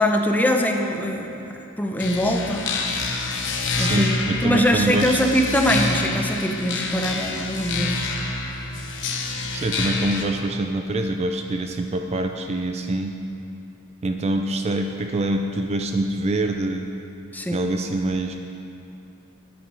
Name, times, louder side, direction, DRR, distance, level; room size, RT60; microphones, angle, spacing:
voice 1, 0.0-2.7 3.8-8.1 17.3-17.7, equal, 10° left, 3 dB, 0.6 m, -23 dB
sound 1, 2.0-10.2, left 3 dB, 60° left, 0.9 m, -27 dB
voice 2, 3.8-5.2 9.5-13.2 14.0-16.9 17.5-18.3, right 2 dB, 30° right, 5 dB, 0.4 m, -25 dB
9.2 x 9.1 x 4.8 m, 2.8 s
head